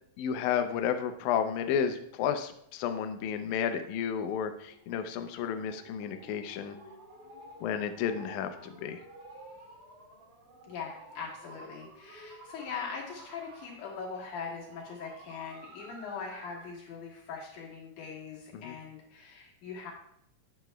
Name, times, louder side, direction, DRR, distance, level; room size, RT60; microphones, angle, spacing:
voice 1, 0.2-6.8 7.6-9.0 18.5-18.8, left 8 dB, 85° left, 7 dB, 1.7 m, -32 dB
sound 1, 4.6-16.8, right 1 dB, 80° right, 3.7 m, -52 dB
voice 2, 10.7-19.9, left 5 dB, 65° left, -4 dB, 2.9 m, -41 dB
7.9 x 7.3 x 2.2 m, 0.72 s
omnidirectional pair, 4.0 m